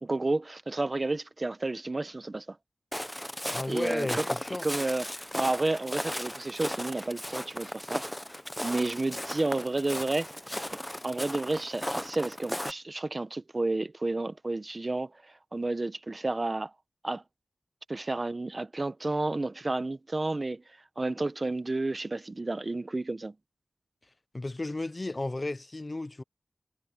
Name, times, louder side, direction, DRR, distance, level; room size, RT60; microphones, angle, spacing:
voice 1, 0.0-2.6 3.7-4.3 4.6-8.0 8.6-10.3 11.0-16.7 17.0-17.2 17.9-20.6 21.0-23.3, right 2 dB, 35° right, 1.1 m, -31 dB
Walk footsteps, 2.9-12.7, equal, 10° left, 0.8 m, -36 dB
voice 2, 3.5-4.7 24.3-26.2, left 2 dB, 30° left, 0.5 m, -34 dB
wide cardioid pair, 85°, 0 cm